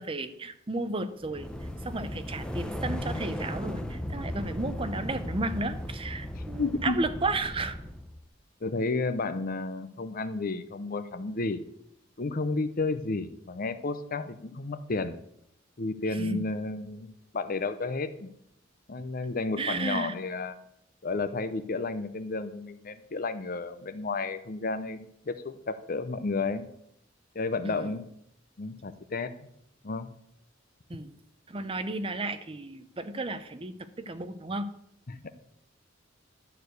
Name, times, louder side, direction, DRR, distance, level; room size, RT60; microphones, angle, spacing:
voice 1, 0.0-1.5 1.8-7.8 16.1-16.4 19.6-20.2 27.6-27.9 30.9-31.1 31.5-34.7, right 2 dB, 30° right, 11 dB, 0.6 m, -33 dB
sound 1, 1.2-8.2, left 1 dB, 5° left, 0.8 m, -36 dB
voice 2, 6.6-7.0 8.6-11.6 12.2-15.2 15.8-18.3 18.9-20.5 21.0-26.7 27.3-28.1 28.6-29.3 29.8-30.1 35.1-35.3, left 3 dB, 45° left, 12 dB, 0.7 m, -32 dB
12.0 x 4.7 x 8.0 m, 0.75 s
head